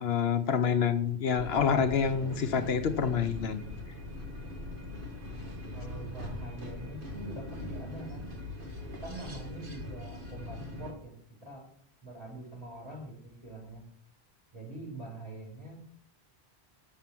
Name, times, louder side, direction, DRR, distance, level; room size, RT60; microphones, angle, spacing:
voice 1, 0.0-3.6, left 7 dB, 70° left, 10 dB, 1.0 m, -27 dB
sound 1, 1.4-10.9, left 1 dB, 55° right, 2.0 m, -41 dB
voice 2, 5.7-8.3 9.0-11.2 11.4-11.6 12.0-13.8 14.5-15.8, right 2 dB, 35° right, -4 dB, 4.9 m, -44 dB
7.2 x 6.8 x 7.4 m, 0.63 s
omnidirectional pair, 1.1 m